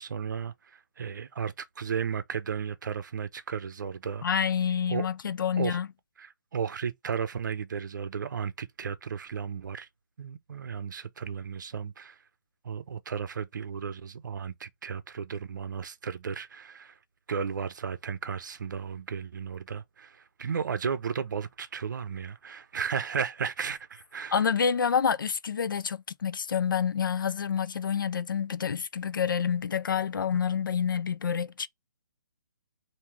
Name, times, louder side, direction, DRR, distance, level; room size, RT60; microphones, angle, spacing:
voice 1, 0.0-4.3 4.9-5.1 5.6-5.8 6.2-9.9 10.2-12.2 12.6-17.0 17.3-24.4 30.3-30.4, right 6 dB, 65° right, 0.7 m, -34 dB
voice 2, 4.2-5.9 24.3-31.7, left 7 dB, 85° left, 0.5 m, -28 dB
3.6 x 2.7 x 4.4 m
hypercardioid pair, 165°, 11 cm